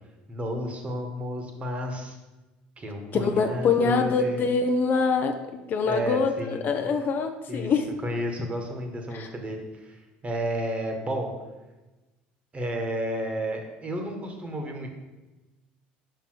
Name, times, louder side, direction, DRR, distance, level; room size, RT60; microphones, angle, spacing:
voice 1, 0.3-2.2 2.8-4.5 5.8-6.6 7.5-7.7 8.0-11.3 12.5-14.9, equal, 30° right, 3 dB, 1.3 m, -32 dB
voice 2, 3.1-5.3 5.7-7.9 9.1-9.3, left 5 dB, 45° left, 6 dB, 0.6 m, -24 dB
5.3 x 4.6 x 4.5 m, 1.1 s
hypercardioid pair, 80°, 5 cm